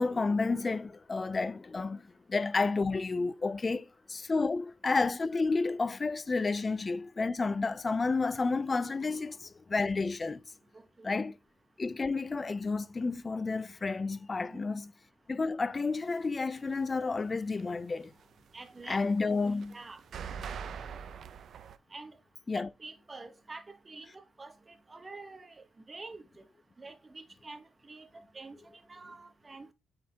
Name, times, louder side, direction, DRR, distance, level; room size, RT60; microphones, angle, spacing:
voice 1, 0.0-10.4 11.0-11.4 11.8-14.9 15.3-18.1 18.9-19.8 22.5-22.7, left 3 dB, 30° left, 0.4 m, -31 dB
voice 2, 10.7-11.2 14.4-14.6 18.5-19.0 19.7-20.0 21.9-22.2 22.8-26.4 26.8-29.7, right 3 dB, 25° right, 1.1 m, -48 dB
sound 1, 16.0-17.1 17.4-21.8, right 7 dB, 60° right, 0.5 m, -43 dB
8.6 x 4.1 x 2.8 m
cardioid pair, 90°, 0 cm